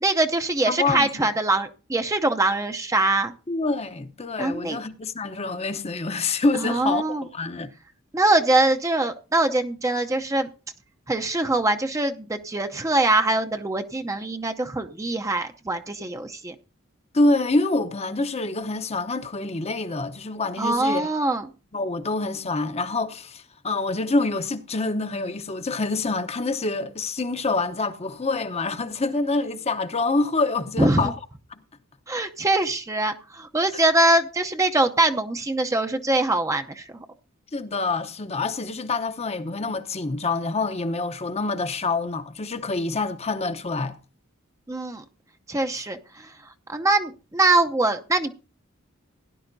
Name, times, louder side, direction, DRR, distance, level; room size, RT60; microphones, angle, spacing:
voice 1, 0.0-3.3 4.4-4.8 6.5-7.3 8.1-10.5 11.1-16.5 20.6-21.5 30.8-31.1 32.1-37.1 44.7-45.0 45.5-46.3 46.7-48.3, right 2 dB, 15° right, 0.6 m, -23 dB
voice 2, 0.7-1.1 3.5-7.7 17.1-21.1 21.7-31.1 33.7-33.8 37.5-44.0, left 3 dB, 30° left, 0.8 m, -26 dB
17.0 x 10.5 x 2.6 m
head